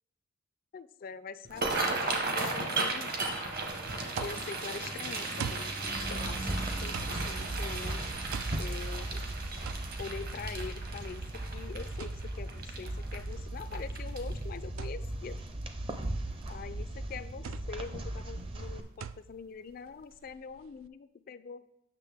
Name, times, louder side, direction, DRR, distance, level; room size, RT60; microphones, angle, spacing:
voice 1, 0.7-3.3 4.2-8.0 8.6-9.2 10.0-11.3 11.5-15.4 16.5-21.6, left 5 dB, 45° left, 14 dB, 0.3 m, -44 dB
sound 1, 1.4-14.6 15.0-15.3 15.6-16.1 16.5-16.6 17.9-18.0 18.4-18.5 19.0-19.1, right 3 dB, 50° right, 1.0 m, -36 dB
sound 2, 4.1-20.9, right 7 dB, 80° right, 0.3 m, -46 dB
sound 3, 5.8-18.8, right 1 dB, 30° right, 0.6 m, -38 dB
8.2 x 6.4 x 3.5 m, 0.82 s
head